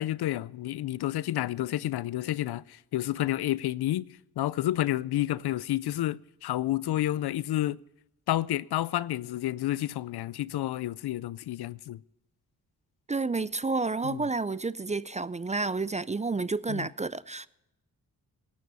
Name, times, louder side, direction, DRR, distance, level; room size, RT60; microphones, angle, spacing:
voice 1, 0.0-4.1 4.4-7.8 8.3-12.0 14.0-14.3 16.7-16.9, left 14 dB, 75° left, 0.5 m, -30 dB
voice 2, 13.1-17.5, right 3 dB, 20° right, 0.4 m, -30 dB
17.0 x 9.6 x 5.4 m
supercardioid pair, 45°, 39 cm